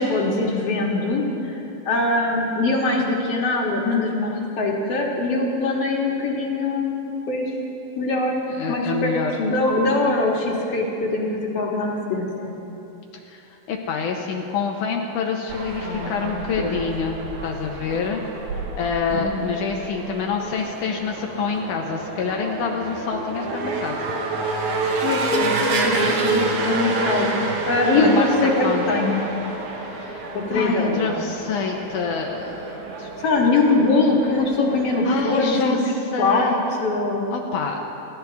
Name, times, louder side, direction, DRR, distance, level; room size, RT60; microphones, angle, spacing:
voice 1, 0.0-1.6 1.9-7.4 8.0-8.3 8.7-12.5 15.8-16.8 19.1-19.4 25.0-25.9 26.2-27.3 27.7-28.5 28.9-29.3 30.3-31.2 33.2-35.8 36.2-36.5 36.8-37.2, left 2 dB, 55° left, -1 dB, 2.7 m, -22 dB
voice 2, 8.5-9.3 13.3-17.2 17.4-18.2 18.8-24.0 27.9-28.9 29.9-33.1 35.0-35.8 36.1-36.6 37.3-37.8, left 5 dB, 75° left, 1 dB, 2.4 m, -27 dB
sound 1, 15.5-35.4, right 3 dB, 70° right, 2.7 m, -29 dB
28.5 x 13.0 x 3.5 m, 3.0 s
omnidirectional pair, 3.6 m